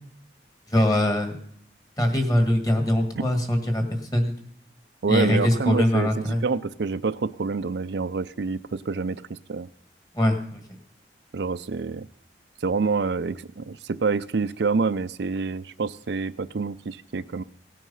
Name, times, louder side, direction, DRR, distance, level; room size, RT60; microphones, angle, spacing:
voice 1, 0.7-1.4 2.0-4.3 5.1-6.4 10.2-10.6, left 1 dB, 20° left, 5 dB, 1.8 m, -22 dB
voice 2, 5.0-9.7 11.3-12.1 12.6-17.4, right 4 dB, 75° right, 12 dB, 0.5 m, -27 dB
17.5 x 9.2 x 5.6 m, 0.68 s
head